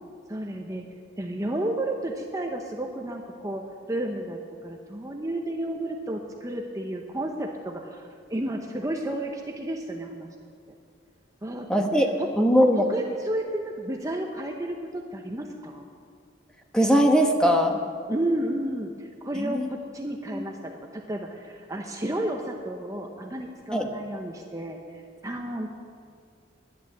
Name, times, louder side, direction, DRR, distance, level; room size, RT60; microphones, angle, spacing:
voice 1, 0.3-0.9 1.2-10.3 11.4-11.8 12.2-12.3 12.8-15.9 18.1-25.7, right 1 dB, 20° right, 2 dB, 0.8 m, -32 dB
voice 2, 11.7-12.1 12.4-12.9 16.7-17.8 19.4-19.7 20.3-20.4 23.7-23.9, equal, 5° left, 3 dB, 1.0 m, -20 dB
11.0 x 10.5 x 7.5 m, 2.2 s
head